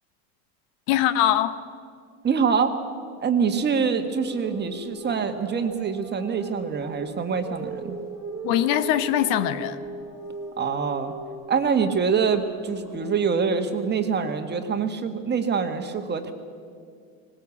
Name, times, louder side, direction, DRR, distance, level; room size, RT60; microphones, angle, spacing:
voice 1, 0.9-1.6 8.4-9.8, left 12 dB, 65° left, 1.2 m, -22 dB
voice 2, 2.2-2.8 3.2-8.0 10.6-11.1 11.5-16.3, right 6 dB, 25° right, 1.8 m, -25 dB
sound 1, 4.2-13.5, right 3 dB, 5° right, 2.1 m, -38 dB
19.5 x 19.5 x 8.5 m
supercardioid pair, 125°, 41 cm